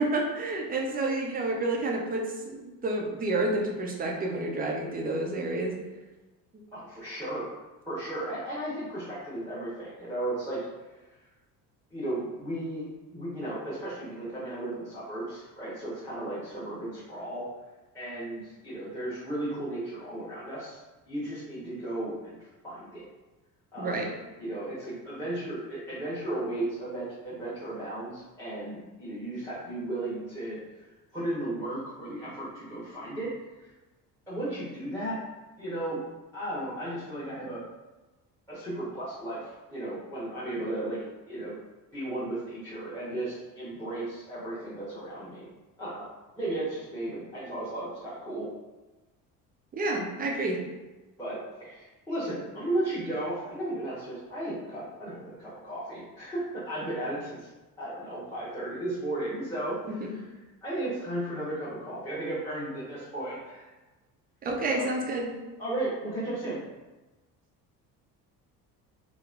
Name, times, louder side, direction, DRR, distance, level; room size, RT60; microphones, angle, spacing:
voice 1, 0.0-5.8 23.8-24.1 49.7-50.6 59.9-60.1 64.4-65.3, right 2 dB, 20° right, 0 dB, 0.4 m, -29 dB
voice 2, 6.7-7.5 7.8-10.6 11.9-17.5 17.9-20.8 21.1-22.4 22.6-23.0 23.7-24.1 24.4-30.6 31.1-33.3 33.6-33.7 34.3-35.2 35.6-36.0 36.3-37.6 38.5-41.5 41.9-45.5 45.8-46.1 46.3-48.5 51.2-57.5 57.8-60.1 60.6-63.7 64.7-64.9 65.6-66.6, right 1 dB, 5° left, -12 dB, 1.0 m, -35 dB
3.0 x 2.1 x 2.4 m, 1.1 s
hypercardioid pair, 60°, 49 cm